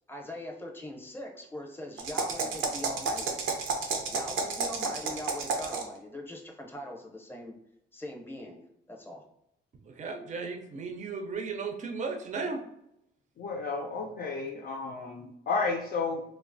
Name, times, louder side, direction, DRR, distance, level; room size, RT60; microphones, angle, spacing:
voice 1, 0.1-3.4 4.1-7.5 7.9-9.2, left 1 dB, 10° left, 1 dB, 0.7 m, -41 dB
sound 1, 2.0-6.0, right 4 dB, 85° right, 0.6 m, -31 dB
voice 2, 9.8-12.6, right 4 dB, 40° right, 3 dB, 0.5 m, -35 dB
voice 3, 13.4-16.2, left 4 dB, 50° left, 1 dB, 0.4 m, -32 dB
3.1 x 2.0 x 2.5 m, 0.80 s
cardioid pair, 90°, 20 cm